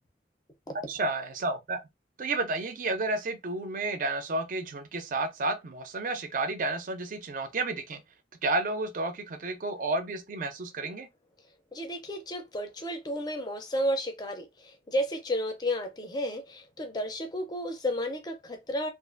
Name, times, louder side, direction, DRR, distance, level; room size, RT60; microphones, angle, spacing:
voice 1, 0.9-1.8 2.2-8.0 8.4-11.1, right 2 dB, 50° right, 0.5 m, -31 dB
voice 2, 11.7-18.9, equal, 25° left, 0.5 m, -32 dB
2.4 x 2.4 x 2.4 m
head